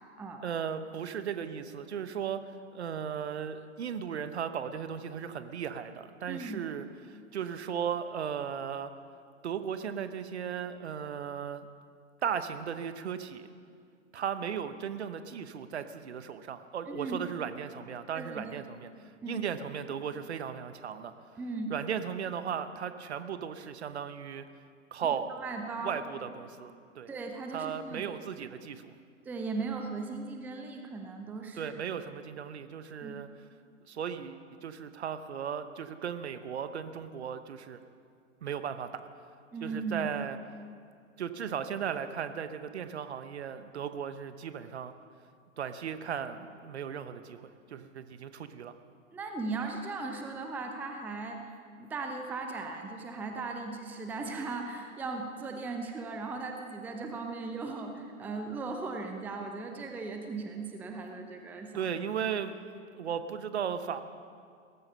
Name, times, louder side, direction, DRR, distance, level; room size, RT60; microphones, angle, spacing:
voice 1, 0.4-8.9 9.4-11.7 12.2-13.5 14.1-21.1 21.7-24.5 24.9-25.3 25.8-27.1 27.5-28.9 31.6-33.3 33.8-37.8 38.4-39.0 39.6-40.4 41.2-44.9 45.6-48.7 61.7-62.6 62.9-64.0, right 8 dB, 55° right, 11 dB, 1.0 m, -36 dB
voice 2, 6.3-6.6 16.9-17.2 18.1-18.6 19.2-19.4 21.4-21.7 25.4-26.0 27.1-28.1 29.2-31.7 33.0-33.2 39.5-40.1 49.1-51.4 51.8-61.9, right 3 dB, 5° right, 4 dB, 0.6 m, -37 dB
18.0 x 14.0 x 5.6 m, 2.2 s
figure-of-eight pair, 110°, 39 cm